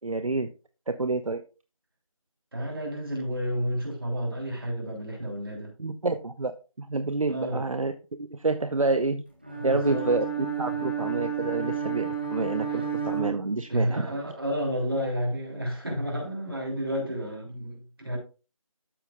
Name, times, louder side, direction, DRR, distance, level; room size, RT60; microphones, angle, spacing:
voice 1, 0.0-0.5 0.9-1.4 5.8-6.5 6.8-7.9 8.2-9.2 9.6-10.3 10.6-14.1, right 3 dB, 70° right, 10 dB, 0.7 m, -28 dB
voice 2, 2.5-5.7 7.3-7.7 9.6-10.1 12.7-12.9 13.7-18.2, equal, 40° right, -1 dB, 3.2 m, -31 dB
Bowed string instrument, 9.4-14.0, right 7 dB, 20° right, 1.0 m, -31 dB
13.0 x 5.3 x 2.2 m, 0.33 s
figure-of-eight pair, 175°, 18 cm